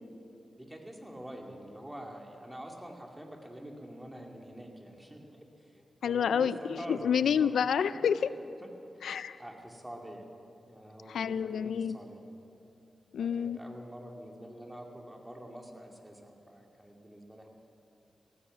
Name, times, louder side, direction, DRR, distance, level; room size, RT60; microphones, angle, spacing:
voice 1, 0.6-7.6 8.6-8.7 8.9-9.0 9.4-10.3 10.7-12.2 13.2-17.5, right 1 dB, 10° right, 1 dB, 2.5 m, -46 dB
voice 2, 6.0-8.3 9.0-9.4 11.1-12.0 13.1-13.6, left 7 dB, 85° left, 15 dB, 0.3 m, -29 dB
17.0 x 10.5 x 7.2 m, 2.7 s
cardioid pair, 50°, 0 cm